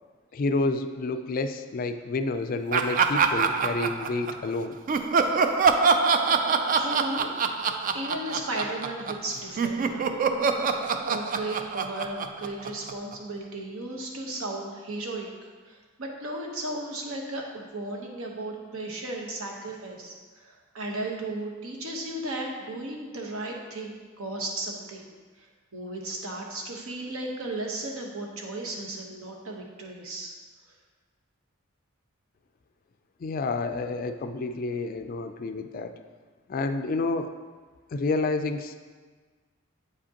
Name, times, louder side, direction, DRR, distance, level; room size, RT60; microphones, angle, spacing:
voice 1, 0.3-4.8 33.2-36.0 36.5-37.3 37.9-38.8, left 3 dB, 40° left, 9 dB, 0.3 m, -29 dB
Laughter, 2.7-4.5 4.9-9.3 9.6-13.1, right 5 dB, 40° right, 0.3 m, -25 dB
voice 2, 6.7-7.3 7.9-10.1 11.0-25.1 25.4-25.5 25.7-30.3, right 2 dB, 80° right, 0 dB, 1.1 m, -35 dB
8.3 x 5.0 x 2.9 m, 1.4 s
head